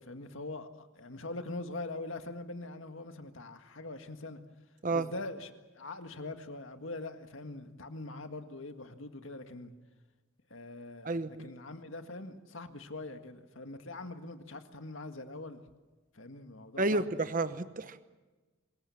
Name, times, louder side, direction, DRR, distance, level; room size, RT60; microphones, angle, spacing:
voice 1, 0.0-4.4 4.9-9.7 10.5-15.6 16.1-17.2, left 2 dB, 80° left, 1.9 m, -43 dB
voice 2, 11.0-11.5 16.8-18.0, right 2 dB, 45° right, 0.9 m, -31 dB
25.5 x 21.5 x 7.2 m
head